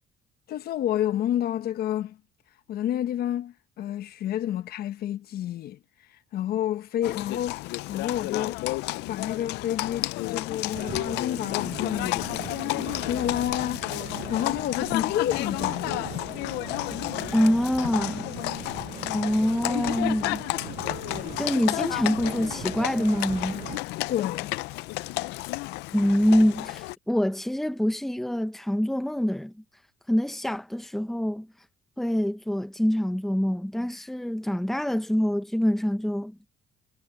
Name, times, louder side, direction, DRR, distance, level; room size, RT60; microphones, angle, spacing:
voice 1, 0.5-2.2 2.7-5.8 6.3-7.6 7.9-8.6 9.1-12.3 13.0-16.2 24.1-24.5, left 11 dB, 65° left, 1.2 m, -29 dB
Livestock farm animals working animals, 7.0-26.9, left 20 dB, 90° left, 0.5 m, -31 dB
sound 1, 10.7-23.8, right 10 dB, 50° right, 1.1 m, -40 dB
voice 2, 17.3-18.3 19.1-20.4 21.4-23.7 25.9-29.5 30.1-31.5 32.0-36.3, equal, ahead, 0.9 m, -25 dB
cardioid pair, 110°, 17 cm